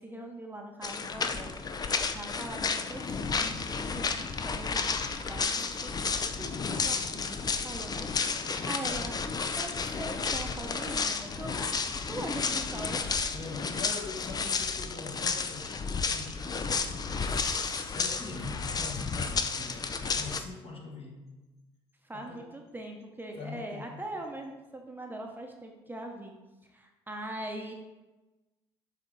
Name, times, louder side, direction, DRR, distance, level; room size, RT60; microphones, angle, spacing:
voice 1, 0.0-9.2 9.6-11.6 12.1-13.1 22.0-26.3 26.6-27.7, right 1 dB, 15° right, 2 dB, 0.8 m, -42 dB
sound 1, 0.8-20.4, left 5 dB, 30° left, 0.5 m, -32 dB
voice 2, 13.3-16.4 17.2-21.3 22.1-22.5 23.4-24.0, left 3 dB, 45° left, 0 dB, 1.6 m, -43 dB
6.7 x 3.5 x 4.0 m, 1.1 s
hypercardioid pair, 65°, 13 cm